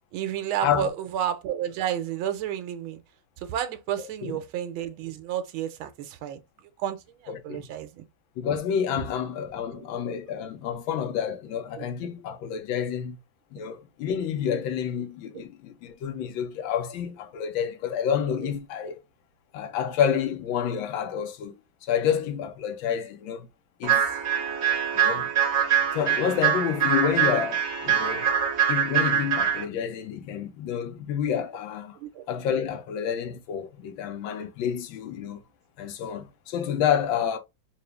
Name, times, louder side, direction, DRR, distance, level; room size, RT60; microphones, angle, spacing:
voice 1, 0.1-3.0 3.4-6.4 6.8-8.0 9.7-10.0 11.8-12.1 15.3-15.4 18.4-18.5 32.0-32.2, right 10 dB, 85° right, 1.5 m, -31 dB
voice 2, 7.3-7.7 8.4-13.2 13.5-19.0 19.5-21.5 21.8-23.5 23.8-24.1 24.9-25.3 25.9-28.3 28.7-32.0 32.3-35.4 35.8-37.4, left 8 dB, 75° left, 1.4 m, -29 dB
sound 1, 23.8-29.6, right 8 dB, 45° right, 1.3 m, -24 dB
3.9 x 2.4 x 3.2 m
omnidirectional pair, 2.3 m